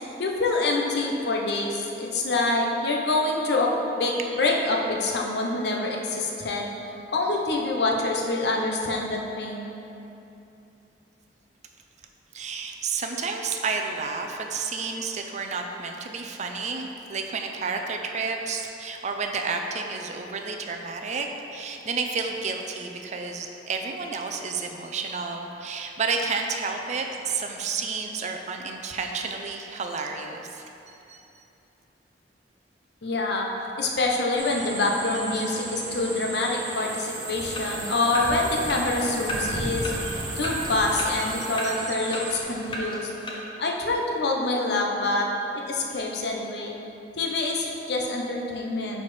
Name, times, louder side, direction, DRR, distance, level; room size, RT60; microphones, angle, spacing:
voice 1, 0.2-3.7 4.0-6.7 7.1-9.7 33.0-33.5 33.8-39.9 40.4-43.1 43.6-45.3 45.5-46.8 47.2-49.0, left 2 dB, 65° left, -1 dB, 0.8 m, -26 dB
voice 2, 12.3-31.4 40.9-41.0 41.6-41.8, right 4 dB, 40° right, 3 dB, 0.5 m, -31 dB
sound 1, 34.4-42.4, right 2 dB, 85° right, 1.3 m, -34 dB
sound 2, 37.5-43.3, equal, 30° left, 0.7 m, -35 dB
9.3 x 4.2 x 3.3 m, 2.9 s
head